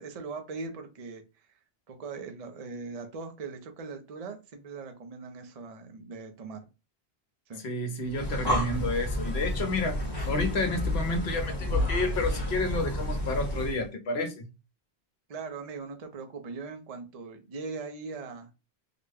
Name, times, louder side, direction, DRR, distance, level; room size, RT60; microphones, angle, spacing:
voice 1, 0.0-1.5 1.9-6.7 7.5-7.6 15.3-18.5, right 4 dB, 40° right, 0.7 m, -40 dB
voice 2, 7.6-10.0 10.3-14.5, left 2 dB, 75° left, 1.0 m, -30 dB
Breathing, 8.0-13.8, left 1 dB, 25° left, 0.9 m, -30 dB
3.9 x 2.2 x 3.4 m
omnidirectional pair, 1.1 m